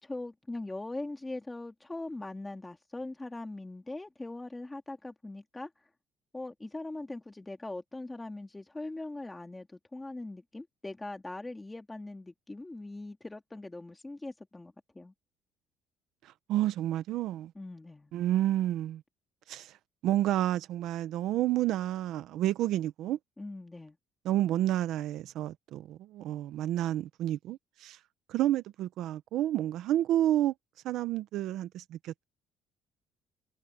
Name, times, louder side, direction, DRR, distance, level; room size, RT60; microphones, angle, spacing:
voice 1, 0.0-5.7 6.3-15.1 17.5-18.1 23.4-24.0, left 2 dB, 10° left, 2.2 m, -41 dB
voice 2, 16.2-17.5 18.1-19.0 19.5-19.8 20.0-23.2 24.2-28.0 28.3-30.5 30.8-32.2, right 13 dB, 70° right, 0.8 m, -30 dB
cardioid pair, 150°, 0 cm